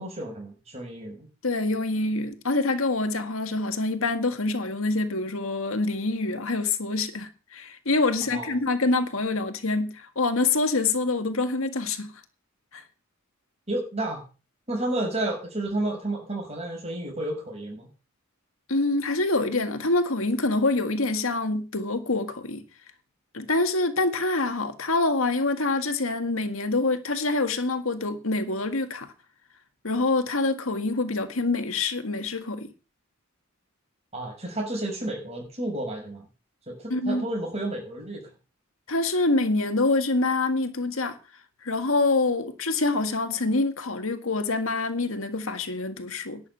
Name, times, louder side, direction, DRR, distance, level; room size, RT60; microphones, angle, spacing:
voice 1, 0.0-1.3 8.3-8.5 13.7-14.2 14.7-17.9 34.1-36.2 36.7-38.3, right 1 dB, 30° right, 6.6 m, -31 dB
voice 2, 1.4-12.1 12.7-12.8 18.7-22.6 23.3-29.1 29.8-32.7 36.9-37.2 38.9-41.2 41.6-46.4, left 3 dB, 75° left, 1.8 m, -26 dB
11.5 x 7.6 x 9.1 m
head